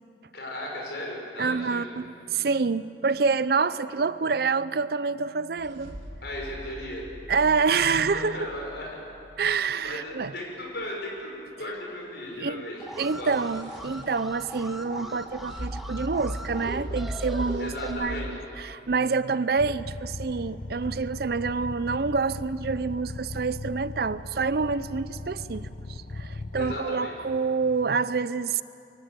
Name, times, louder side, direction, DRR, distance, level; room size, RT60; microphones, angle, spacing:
voice 1, 0.3-1.9 6.2-7.0 8.1-9.0 9.8-12.8 13.2-13.3 17.6-18.3 26.5-27.1, left 1 dB, 60° left, -1 dB, 5.9 m, -36 dB
voice 2, 1.4-6.0 7.3-8.5 9.4-10.3 12.4-12.6 13.0-28.6, right 4 dB, 55° right, 16 dB, 0.5 m, -27 dB
sound 1, 5.6-9.7 13.0-18.3, equal, 75° right, 2.9 m, -39 dB
Alarm, 12.8-17.9, equal, ahead, 1.3 m, -40 dB
sound 2, 19.6-26.8, left 2 dB, 45° left, 0.8 m, -38 dB
23.0 x 16.5 x 9.6 m, 2.7 s
head